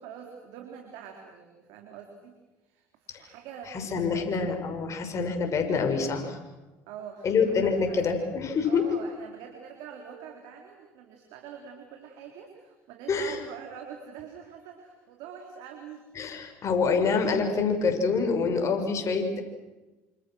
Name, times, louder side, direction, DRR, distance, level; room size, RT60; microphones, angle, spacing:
voice 1, 0.0-2.3 2.6-4.5 6.9-8.1 8.6-16.0, right 7 dB, 75° right, 3 dB, 3.8 m, -45 dB
voice 2, 3.7-6.4 7.2-8.8 13.1-13.4 16.1-19.4, left 5 dB, 45° left, 5 dB, 6.3 m, -26 dB
27.5 x 27.5 x 6.4 m, 1.1 s
hypercardioid pair, 70°, 7 cm